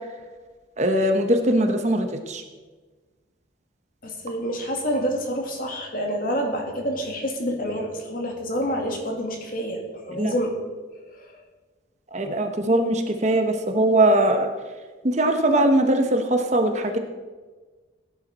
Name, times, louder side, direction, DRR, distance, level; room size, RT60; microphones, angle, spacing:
voice 1, 0.8-2.4 10.2-10.3 12.1-14.5 15.0-17.0, right 1 dB, 35° right, 6 dB, 1.0 m, -21 dB
voice 2, 4.0-9.8 10.1-10.6 11.2-11.4, equal, 45° left, 1 dB, 2.1 m, -28 dB
17.0 x 9.8 x 4.2 m, 1.4 s
head